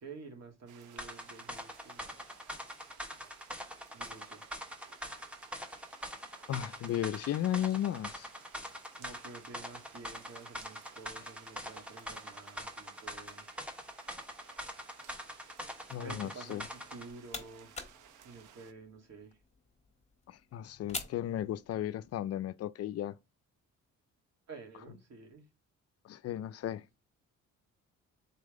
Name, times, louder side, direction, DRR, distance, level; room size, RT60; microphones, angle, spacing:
voice 1, 0.0-2.2 3.9-4.4 9.0-13.4 16.0-17.8 18.2-19.4 24.5-25.4, right 4 dB, 60° right, 2.0 m, -50 dB
sound 1, 0.7-18.7, right 9 dB, 85° right, 0.8 m, -59 dB
sound 2, 1.0-17.1, equal, 5° right, 1.1 m, -44 dB
voice 2, 6.5-8.3 15.9-16.6 20.3-23.1 26.0-26.8, left 11 dB, 55° left, 0.4 m, -35 dB
sound 3, 16.8-22.1, left 3 dB, 20° left, 1.4 m, -47 dB
4.0 x 3.4 x 3.6 m
cardioid pair, 90°, 30 cm